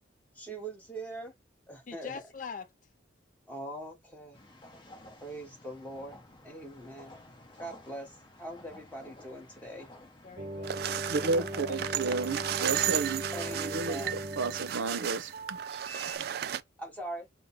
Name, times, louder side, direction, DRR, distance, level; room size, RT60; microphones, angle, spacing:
voice 1, 0.3-1.3 1.7-2.2 3.5-4.4 5.2-7.1 7.6-9.9 13.3-14.2 16.8-17.3, right 1 dB, 10° left, 1.3 m, -42 dB
voice 2, 1.9-2.7 10.2-11.4 11.7-12.3, left 6 dB, 40° left, 0.4 m, -44 dB
sound 1, 4.3-13.8, left 1 dB, 25° left, 1.0 m, -53 dB
sound 2, 10.4-16.2, right 1 dB, 35° right, 0.7 m, -39 dB
sound 3, 10.6-16.6, right 11 dB, 50° right, 0.3 m, -34 dB
voice 3, 10.8-13.2 13.5-15.6 16.2-16.3, right 3 dB, 80° right, 0.7 m, -32 dB
5.2 x 2.2 x 4.1 m
head